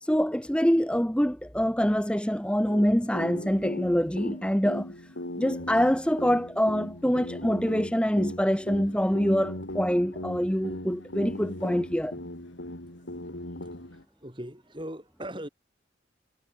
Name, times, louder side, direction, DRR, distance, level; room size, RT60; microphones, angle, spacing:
voice 1, 0.0-4.9 5.4-12.2, equal, 5° left, 1.7 m, -25 dB
sound 1, 2.7-14.0, left 1 dB, 90° left, 5.0 m, -39 dB
voice 2, 13.6-15.5, right 1 dB, 25° right, 6.7 m, -40 dB
head